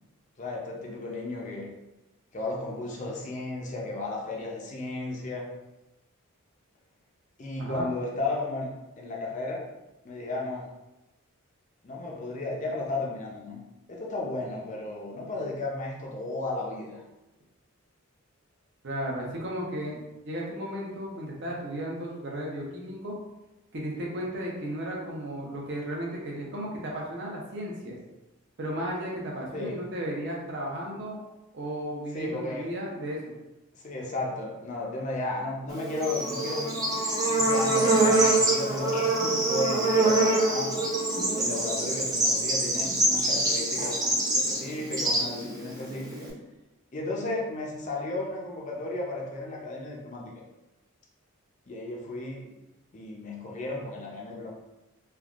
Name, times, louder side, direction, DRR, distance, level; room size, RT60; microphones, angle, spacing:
voice 1, 0.4-1.7 2.3-5.5 7.4-8.7 9.0-9.7 10.0-10.7 11.8-13.6 13.9-17.0 29.5-29.8 32.1-32.7 33.7-36.8 37.2-40.7 41.4-44.0 44.3-46.3 46.9-50.3 51.7-52.5 52.9-54.5, left 2 dB, 35° left, -2 dB, 0.5 m, -34 dB
voice 2, 18.8-23.2 23.7-28.0 28.6-31.2 31.5-33.3, equal, 55° right, -2 dB, 0.7 m, -34 dB
Bird / Insect, 35.7-46.3, right 2 dB, 15° right, 0.4 m, -25 dB
3.3 x 2.3 x 2.4 m, 0.99 s
head